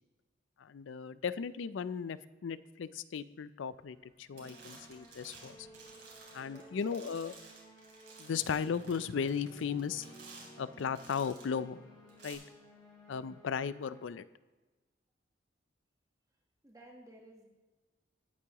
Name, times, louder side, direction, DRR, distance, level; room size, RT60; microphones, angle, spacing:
voice 1, 0.6-5.7 6.3-7.3 8.2-10.1 10.6-11.8 12.2-12.4 13.1-14.2, left 6 dB, 75° left, 15 dB, 0.4 m, -36 dB
sound 1, 3.9-4.1 4.4-11.6 12.1-12.3, right 4 dB, 65° right, 3.5 m, -55 dB
sound 2, 4.3-14.1, equal, 25° left, 3.1 m, -56 dB
voice 2, 6.3-7.2 16.6-17.5, right 1 dB, 15° right, 0 dB, 1.2 m, -56 dB
17.0 x 8.4 x 2.9 m, 1.2 s
head